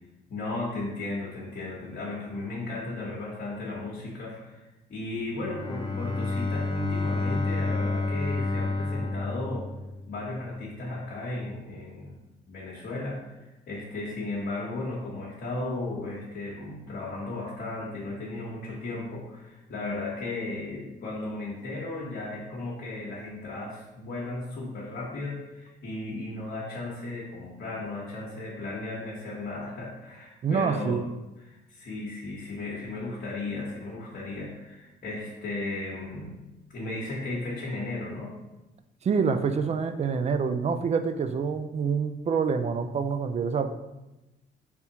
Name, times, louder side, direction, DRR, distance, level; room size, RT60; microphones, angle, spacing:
voice 1, 0.3-9.7 10.1-12.1 12.5-31.0 31.4-36.3 36.7-38.4, left 2 dB, 55° left, -6 dB, 1.2 m, -35 dB
Bowed string instrument, 5.4-10.3, left 3 dB, 25° left, 0.5 m, -30 dB
voice 2, 30.4-31.0 39.0-43.7, right 5 dB, 35° right, 9 dB, 0.4 m, -26 dB
4.2 x 3.5 x 2.9 m, 1.0 s
cardioid pair, 90°, 20 cm